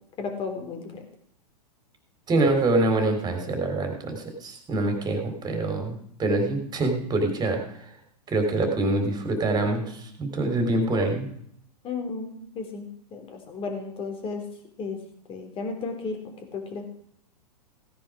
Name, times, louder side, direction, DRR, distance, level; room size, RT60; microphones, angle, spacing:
voice 1, 0.2-1.0 11.8-14.4 14.8-15.0 15.3-16.2 16.5-16.8, left 4 dB, 25° left, 4 dB, 3.7 m, -33 dB
voice 2, 2.3-7.8 8.3-11.3, right 2 dB, 20° right, 4 dB, 3.8 m, -25 dB
17.0 x 10.0 x 5.0 m, 0.66 s
hypercardioid pair, 115°, 21 cm